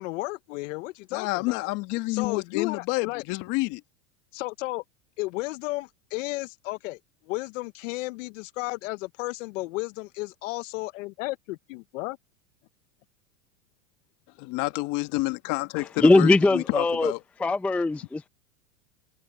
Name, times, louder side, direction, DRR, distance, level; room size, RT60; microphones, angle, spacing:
voice 1, 0.0-1.7 2.1-3.2 4.3-4.8 5.2-7.0 7.3-12.2, left 21 dB, 65° left, 0.8 m, -33 dB
voice 2, 1.1-3.8 14.4-17.2, left 22 dB, 50° left, 1.7 m, -29 dB
voice 3, 16.0-17.1 17.4-18.3, left 2 dB, 5° left, 0.4 m, -20 dB
supercardioid pair, 130°, 41 cm